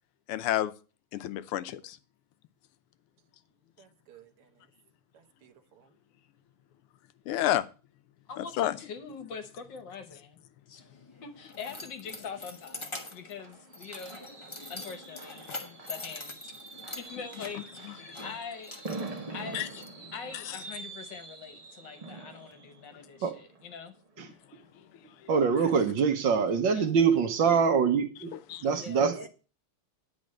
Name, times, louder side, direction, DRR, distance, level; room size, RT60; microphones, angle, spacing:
voice 1, 0.3-0.7 1.1-2.0 7.3-7.6 8.6-8.7 18.1-18.2 19.5-19.7 28.5-28.6, left 12 dB, 85° left, 1.6 m, -29 dB
voice 2, 3.8-4.7 5.1-5.9, right 10 dB, 90° right, 2.1 m, -58 dB
voice 3, 8.3-10.4 10.7-10.9 11.2-14.2 14.7-16.5 17.0-19.7 20.1-24.0 26.7-26.9 28.2-28.3 28.7-29.0, left 6 dB, 60° left, 1.7 m, -43 dB
Keys jangling, 10.8-19.9, left 2 dB, 15° left, 1.0 m, -44 dB
Fireworks, 12.7-24.4 24.8-25.1 25.4-25.5, right 3 dB, 50° right, 0.4 m, -45 dB
voice 4, 25.3-28.3 28.6-29.3, right 6 dB, 65° right, 1.6 m, -24 dB
9.7 x 5.1 x 7.6 m
omnidirectional pair, 2.4 m